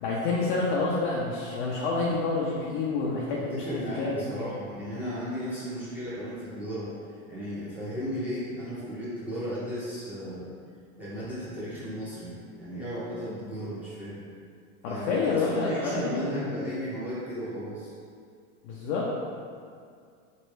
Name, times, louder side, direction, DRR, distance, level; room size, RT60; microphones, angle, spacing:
voice 1, 0.0-4.5 14.8-16.6 18.6-19.1, left 3 dB, 55° left, -4 dB, 0.6 m, -28 dB
voice 2, 3.3-6.9 7.3-10.5 11.0-14.2 14.9-17.9, equal, 5° right, -12 dB, 1.0 m, -35 dB
3.1 x 2.6 x 3.1 m, 2.2 s
supercardioid pair, 140°, 40 cm